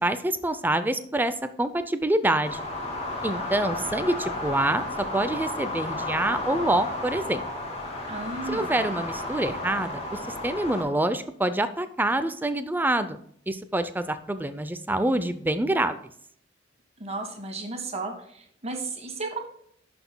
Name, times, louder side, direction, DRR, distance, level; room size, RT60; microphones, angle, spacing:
voice 1, 0.0-2.6 3.2-4.8 5.1-7.4 8.5-13.2 13.5-15.9, right 1 dB, 10° right, 11 dB, 0.5 m, -26 dB
sound 1, 2.4-10.8, left 2 dB, 35° left, 2.2 m, -33 dB
voice 2, 8.0-8.8 17.0-19.4, right 3 dB, 35° right, 3 dB, 1.5 m, -34 dB
11.0 x 6.0 x 2.2 m, 0.66 s
head